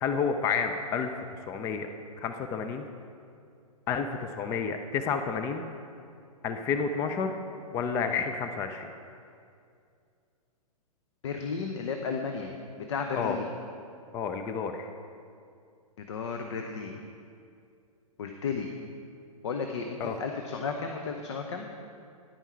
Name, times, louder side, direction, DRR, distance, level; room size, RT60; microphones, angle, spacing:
voice 1, 0.0-1.9 2.2-2.9 3.9-5.7 6.4-7.4 7.7-8.9 13.2-13.4 14.1-14.9 20.0-20.2, left 6 dB, 15° left, 7 dB, 0.3 m, -30 dB
voice 2, 11.2-12.5 12.8-13.5 16.0-17.0 18.2-18.7 19.4-21.7, left 5 dB, 50° left, 4 dB, 0.8 m, -33 dB
10.5 x 8.9 x 4.6 m, 2.4 s
figure-of-eight pair, 115°, 19 cm